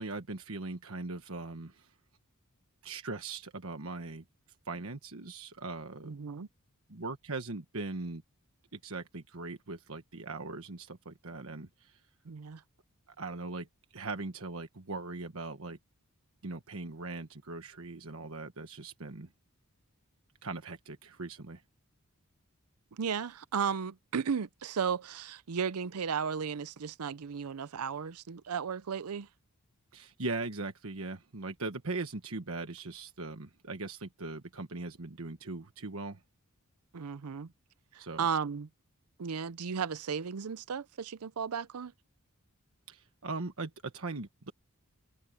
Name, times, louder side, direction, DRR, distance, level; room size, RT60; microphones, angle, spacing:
voice 1, 0.0-1.9 2.8-4.2 4.6-6.1 6.9-8.2 8.7-12.0 13.1-13.7 13.9-15.8 16.4-19.3 20.4-21.6 29.9-36.2 38.0-38.3 42.9-44.5, right 3 dB, 65° right, 1.4 m, -40 dB
voice 2, 6.0-6.5 12.3-12.6 22.9-29.3 36.9-37.5 38.2-38.7 39.2-41.9, right 6 dB, 90° right, 0.6 m, -34 dB
head